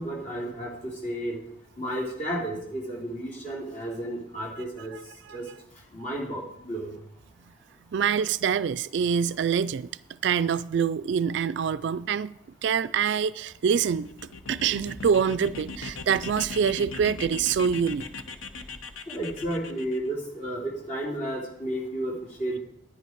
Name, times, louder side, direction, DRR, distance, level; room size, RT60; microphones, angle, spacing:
voice 1, 0.0-1.4 1.8-4.9 5.3-5.4 5.9-6.9 19.1-22.6, right 1 dB, 35° left, 3.5 m, -32 dB
voice 2, 7.9-9.9 10.2-14.1 14.5-18.1, right 7 dB, 60° right, 0.3 m, -25 dB
sound 1, 13.9-20.0, left 4 dB, 85° left, 0.9 m, -39 dB
10.5 x 10.0 x 4.6 m
head